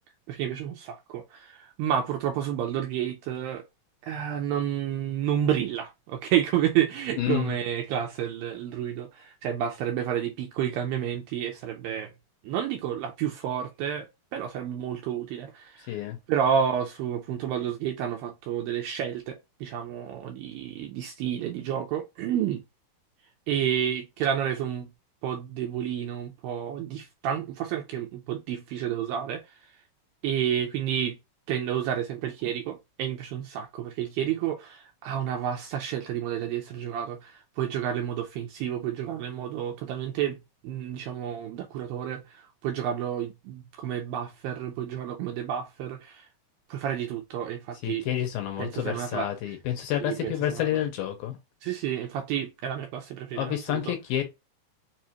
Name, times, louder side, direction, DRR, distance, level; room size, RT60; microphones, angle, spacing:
voice 1, 0.3-3.6 4.0-12.1 12.4-16.0 16.3-22.6 23.5-24.9 25.2-29.7 30.2-31.2 31.5-40.4 40.6-46.3 46.7-48.1 48.6-49.3 50.0-50.7 51.6-53.9, right 9 dB, 85° right, 2.1 m, -30 dB
voice 2, 7.2-7.6 15.9-16.2 47.8-51.4 53.3-54.2, left 11 dB, 75° left, 2.3 m, -29 dB
6.1 x 2.4 x 2.9 m
omnidirectional pair, 4.6 m